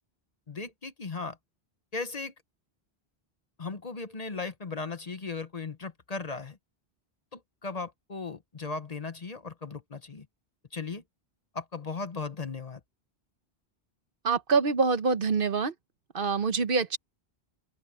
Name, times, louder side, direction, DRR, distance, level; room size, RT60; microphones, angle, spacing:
voice 1, 0.5-1.4 1.9-2.3 3.6-6.6 7.3-10.3 10.7-11.0 11.5-12.8, left 4 dB, 40° left, 1.0 m, -37 dB
voice 2, 14.2-15.7 16.1-17.0, right 5 dB, 60° right, 1.1 m, -25 dB
open air
omnidirectional pair, 1.0 m